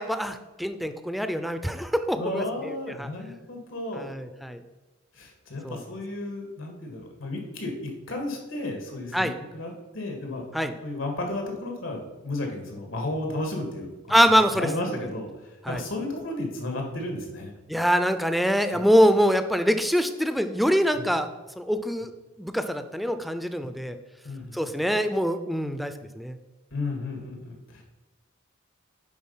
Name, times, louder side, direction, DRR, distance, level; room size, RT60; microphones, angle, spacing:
voice 1, 0.0-3.1 3.9-4.6 5.6-5.8 9.1-9.4 10.5-10.7 14.1-14.7 15.6-15.8 17.7-21.3 21.6-22.1 22.4-24.0 24.5-26.4, equal, ahead, 9 dB, 0.4 m, -24 dB
voice 2, 2.2-4.1 5.1-10.4 10.8-14.2 14.5-15.3 15.7-17.5 18.7-18.8 20.9-21.0 23.6-23.7 24.2-24.7 26.7-27.8, left 2 dB, 90° left, 2 dB, 1.9 m, -33 dB
9.6 x 3.9 x 5.6 m, 1.1 s
head